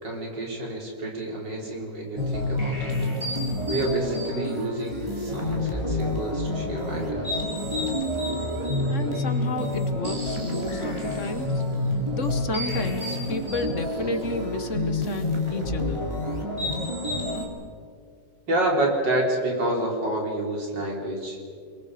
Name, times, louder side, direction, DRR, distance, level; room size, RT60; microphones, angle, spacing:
voice 1, 0.0-3.0 3.7-7.4 18.5-21.4, right 1 dB, 85° right, -1 dB, 4.7 m, -28 dB
sound 1, 2.2-17.5, left 1 dB, 15° right, 3.2 m, -28 dB
voice 2, 8.8-11.6 12.1-16.1, left 2 dB, 45° left, 8 dB, 1.4 m, -32 dB
29.0 x 22.0 x 5.0 m, 2.2 s
omnidirectional pair, 1.9 m